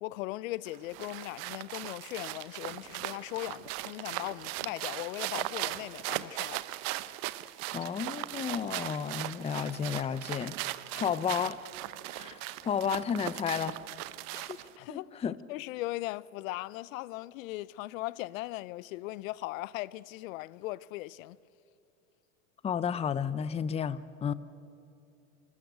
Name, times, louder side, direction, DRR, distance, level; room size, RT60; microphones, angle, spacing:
voice 1, 0.0-6.6 14.3-15.2 15.5-21.4, left 18 dB, 75° left, 0.5 m, -39 dB
sound 1, 0.7-14.8, right 17 dB, 55° right, 0.8 m, -38 dB
voice 2, 7.7-10.6 10.9-11.6 12.1-13.8 14.9-15.4 22.6-24.3, left 7 dB, 15° left, 0.5 m, -32 dB
23.5 x 13.5 x 9.2 m
hypercardioid pair, 100°, 41 cm